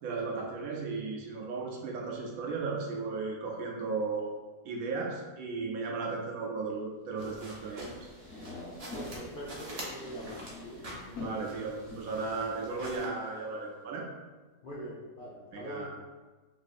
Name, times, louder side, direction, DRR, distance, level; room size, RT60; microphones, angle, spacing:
voice 1, 0.0-4.3 4.6-8.1 11.2-14.1 15.5-15.9, right 4 dB, 70° right, 0 dB, 0.9 m, -35 dB
sound 1, 7.2-13.1, right 1 dB, 50° right, 0.4 m, -46 dB
sound 2, 7.3-13.4, left 2 dB, 35° left, 1.1 m, -46 dB
voice 2, 8.9-10.8 11.1-11.7 14.6-15.9, equal, 70° left, -6 dB, 0.5 m, -43 dB
3.9 x 2.7 x 2.4 m, 1.2 s
omnidirectional pair, 1.6 m